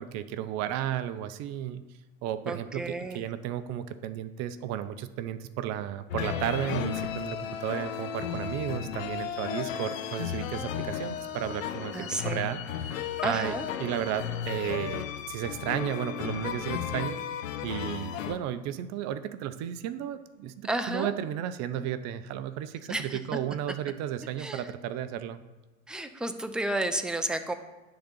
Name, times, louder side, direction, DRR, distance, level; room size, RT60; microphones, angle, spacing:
voice 1, 0.0-1.8 2.2-17.2 17.6-25.4, right 11 dB, 40° right, 12 dB, 0.7 m, -34 dB
voice 2, 2.5-3.3 11.9-12.5 13.2-13.7 20.6-21.1 22.9-23.2 24.4-24.7 25.9-27.5, right 1 dB, ahead, 7 dB, 0.6 m, -32 dB
sound 1, 6.1-18.4, left 8 dB, 70° left, 0.9 m, -34 dB
10.0 x 4.0 x 7.4 m, 1.2 s
hypercardioid pair, 100°, 42 cm